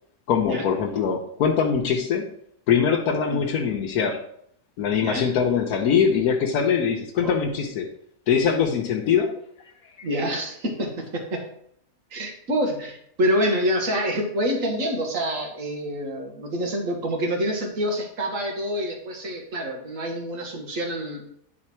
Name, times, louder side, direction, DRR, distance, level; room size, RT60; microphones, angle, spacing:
voice 1, 0.3-2.3 2.7-4.2 4.8-7.9 8.3-9.3 10.0-10.1, left 7 dB, 85° left, 1 dB, 1.3 m, -22 dB
voice 2, 10.0-11.5 12.1-21.3, equal, 60° right, 2 dB, 1.9 m, -27 dB
10.0 x 4.1 x 4.4 m, 0.69 s
omnidirectional pair, 1.6 m